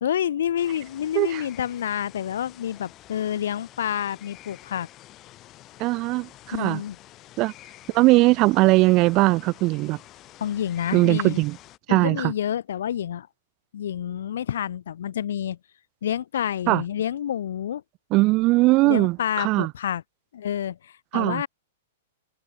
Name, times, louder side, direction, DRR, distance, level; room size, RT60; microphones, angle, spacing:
voice 1, 0.0-4.9 6.5-7.0 10.4-11.4 11.9-13.3 13.7-15.6 16.0-17.8 18.8-20.0 20.3-21.5, left 10 dB, 75° left, 0.6 m, -28 dB
sound 1, 0.6-11.8, left 15 dB, 30° left, 3.9 m, -49 dB
voice 2, 5.8-6.8 7.4-7.5 7.9-10.0 10.9-11.6 11.9-12.3 16.7-16.8 18.1-19.7 21.1-21.4, right 21 dB, 35° right, 0.4 m, -20 dB
hypercardioid pair, 145°, 0 cm